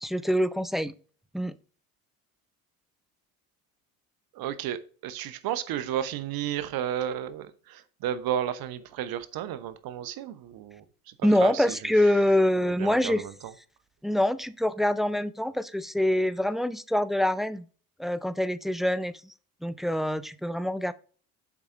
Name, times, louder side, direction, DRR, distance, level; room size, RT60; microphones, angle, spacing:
voice 1, 0.0-0.9 1.3-1.5 11.2-13.2 14.0-17.7 18.0-19.3 19.6-20.9, left 1 dB, ahead, 0.3 m, -25 dB
voice 2, 4.3-11.8 12.6-13.5, right 10 dB, 55° right, 1.0 m, -33 dB
7.3 x 4.9 x 4.5 m
hypercardioid pair, 75°, 43 cm